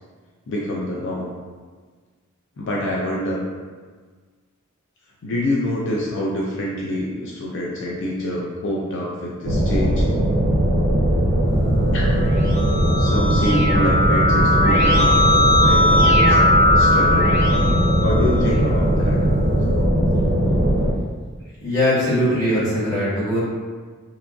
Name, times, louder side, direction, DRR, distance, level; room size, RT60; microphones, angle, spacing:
voice 1, 0.5-1.3 2.6-3.4 5.2-10.1 11.9-12.0 13.0-15.1 15.6-16.4 16.7-17.5 18.0-19.2, left 1 dB, 60° left, -4 dB, 0.4 m, -26 dB
sound 1, 9.4-20.9, right 1 dB, 75° right, 0.4 m, -19 dB
Keyboard (musical), 12.1-18.8, left 1 dB, 40° left, 1.5 m, -19 dB
voice 2, 21.6-23.4, left 1 dB, 15° left, -12 dB, 1.3 m, -20 dB
2.9 x 2.5 x 2.2 m, 1.5 s
head